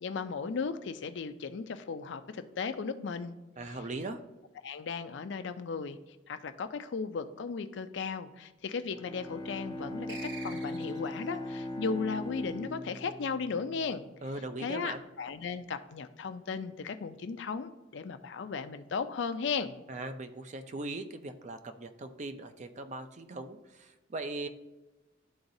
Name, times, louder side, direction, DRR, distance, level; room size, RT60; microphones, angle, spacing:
voice 1, 0.0-3.4 4.6-6.0 6.3-14.0 14.6-19.7, left 5 dB, 65° left, 10 dB, 0.4 m, -36 dB
voice 2, 3.6-4.2 14.2-15.0 19.9-24.5, right 2 dB, 40° right, 8 dB, 0.5 m, -39 dB
Bowed string instrument, 8.8-14.4, left 1 dB, 20° left, 0.6 m, -40 dB
sound 1, 10.1-11.3, right 4 dB, 65° right, 1.0 m, -46 dB
11.5 x 3.9 x 2.7 m, 1.1 s
head